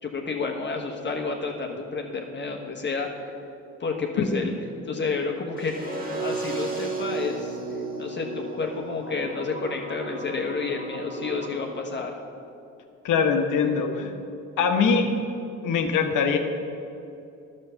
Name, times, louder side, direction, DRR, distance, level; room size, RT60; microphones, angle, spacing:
voice 1, 0.0-3.3 3.8-4.5 4.9-7.6 8.0-12.2, left 4 dB, 35° left, 1 dB, 1.1 m, -30 dB
sound 1, 5.6-11.5, right 3 dB, 30° right, 1.7 m, -34 dB
voice 2, 13.0-14.1 14.6-15.1 15.6-16.4, left 6 dB, 85° left, 5 dB, 1.1 m, -22 dB
10.5 x 6.4 x 6.8 m, 2.7 s
cardioid pair, 90°, 30 cm